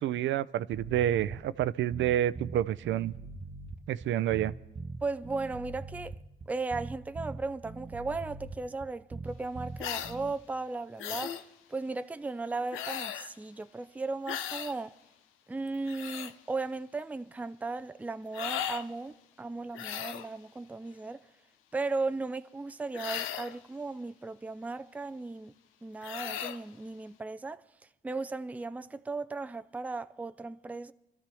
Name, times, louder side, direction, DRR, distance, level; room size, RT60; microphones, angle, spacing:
voice 1, 0.0-3.1 3.9-4.5, right 12 dB, 75° right, 0.5 m, -29 dB
sound 1, 0.7-10.3, right 3 dB, 35° right, 1.0 m, -42 dB
voice 2, 5.0-6.2 6.5-11.4 11.7-14.9 15.5-21.2 21.7-25.6 25.8-27.6 28.0-30.9, right 3 dB, 5° right, 0.4 m, -36 dB
sound 2, 9.8-10.2 11.0-11.4 12.7-13.3 14.3-14.7 15.7-16.3 18.3-18.9 19.7-20.3 22.9-23.6 26.0-26.6, left 10 dB, 90° left, 0.7 m, -36 dB
25.0 x 13.0 x 3.5 m
cardioid pair, 90°, 20 cm